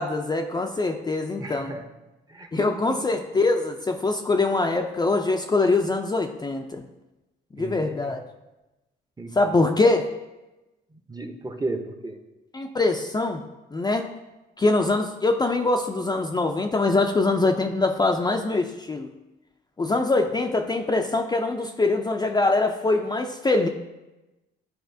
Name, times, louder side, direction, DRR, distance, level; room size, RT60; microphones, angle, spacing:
voice 1, 0.0-1.7 2.5-6.8 7.6-8.2 9.3-10.1 12.5-13.4 13.7-14.1 14.6-19.1 19.8-23.7, left 3 dB, 20° left, 3 dB, 0.4 m, -23 dB
voice 2, 1.4-1.9 2.3-3.1 7.6-8.1 9.2-9.7 10.9-12.2, right 2 dB, 20° right, 6 dB, 0.7 m, -35 dB
10.0 x 4.1 x 2.7 m, 1.0 s
cardioid pair, 90°, 20 cm